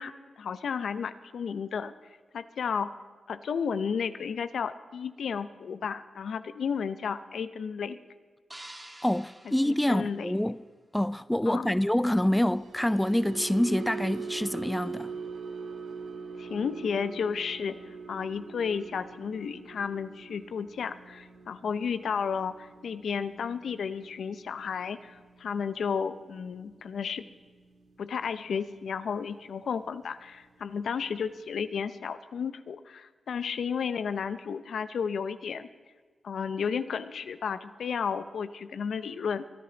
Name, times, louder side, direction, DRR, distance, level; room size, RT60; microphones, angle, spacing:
voice 1, 0.0-1.9 2.3-2.9 3.3-8.0 9.5-10.4 11.5-11.7 16.4-27.2 28.0-35.7 36.2-39.4, left 6 dB, 80° left, 0.5 m, -33 dB
sound 1, 8.5-10.8, right 1 dB, 20° right, 2.6 m, -49 dB
voice 2, 9.0-10.6 10.9-15.1, left 1 dB, 10° left, 0.4 m, -26 dB
sound 2, 12.2-28.6 28.9-29.2 29.6-29.8, right 5 dB, 85° right, 1.5 m, -43 dB
23.5 x 10.0 x 3.9 m
supercardioid pair, 45°, 0 cm